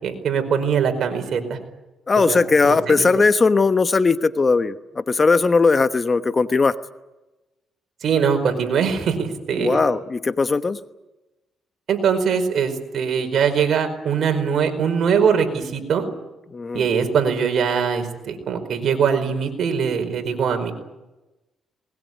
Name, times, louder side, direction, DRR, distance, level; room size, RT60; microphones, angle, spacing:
voice 1, 0.0-1.6 2.2-3.1 8.0-9.8 11.9-16.1 16.7-20.7, right 6 dB, 60° right, 5 dB, 4.9 m, -22 dB
voice 2, 2.1-6.7 9.5-10.8 16.5-16.8, left 4 dB, 30° left, 11 dB, 1.1 m, -18 dB
21.0 x 20.5 x 9.4 m, 1.0 s
cardioid pair, 90°, 0 cm